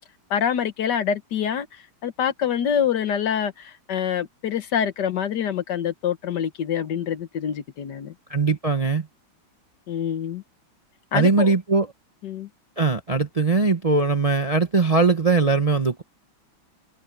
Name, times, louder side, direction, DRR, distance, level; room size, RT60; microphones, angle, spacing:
voice 1, 0.3-8.1 9.9-10.4 11.1-11.6 12.2-12.5, left 8 dB, 65° left, 1.5 m, -26 dB
voice 2, 8.3-9.1 11.1-11.9 12.8-16.0, right 4 dB, 30° right, 0.7 m, -20 dB
omnidirectional pair, 2.2 m